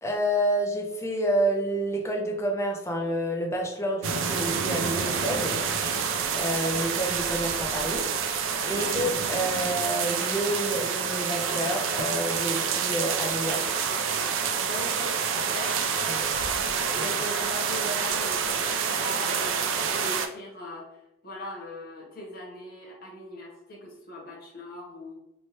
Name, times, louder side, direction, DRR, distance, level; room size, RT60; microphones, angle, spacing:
voice 1, 0.0-5.5 6.3-13.8 16.1-16.2 17.0-17.1, right 1 dB, 15° left, 1 dB, 0.3 m, -29 dB
sound 1, 4.0-20.3, right 6 dB, 70° right, 0.3 m, -28 dB
voice 2, 8.6-9.1 14.7-16.3 16.9-25.2, left 1 dB, 45° left, -2 dB, 0.8 m, -40 dB
3.1 x 2.1 x 2.8 m, 0.92 s
head